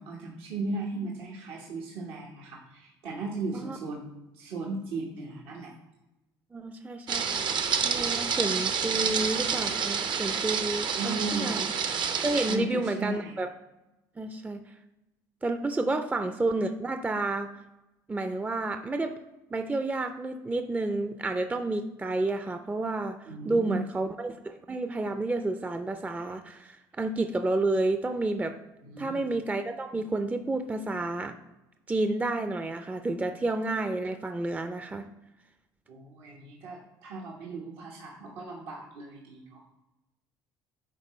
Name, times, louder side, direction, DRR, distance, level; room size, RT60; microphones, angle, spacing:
voice 1, 0.0-5.7 10.9-11.7 12.4-13.4 15.9-16.0 23.3-23.9 28.8-29.2 35.9-39.6, right 3 dB, 80° right, -2 dB, 1.1 m, -36 dB
voice 2, 6.5-7.5 7.8-11.7 12.2-13.5 14.2-14.6 15.4-17.5 18.1-19.1 19.5-28.6 29.0-31.3 31.9-35.1, right 2 dB, 15° right, 8 dB, 0.4 m, -30 dB
sound 1, 7.1-12.6, right 6 dB, 50° right, 0.7 m, -28 dB
9.7 x 3.7 x 3.1 m, 0.98 s
supercardioid pair, 75°, 10 cm